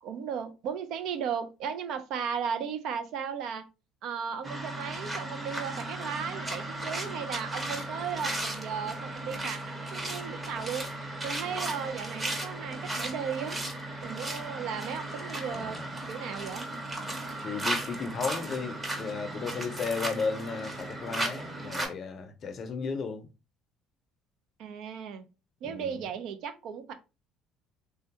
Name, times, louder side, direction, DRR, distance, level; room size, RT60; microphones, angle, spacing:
voice 1, 0.0-3.6 4.0-10.9 11.2-13.6 14.0-15.8 16.1-16.7 24.6-25.3 25.6-26.9, right 7 dB, 70° right, 0.4 m, -36 dB
sound 1, 4.4-21.9, right 1 dB, 20° right, 0.9 m, -36 dB
voice 2, 15.5-15.9 17.4-23.3 25.6-26.0, left 5 dB, 45° left, 0.5 m, -34 dB
3.3 x 2.2 x 2.7 m
cardioid pair, 115°, 0 cm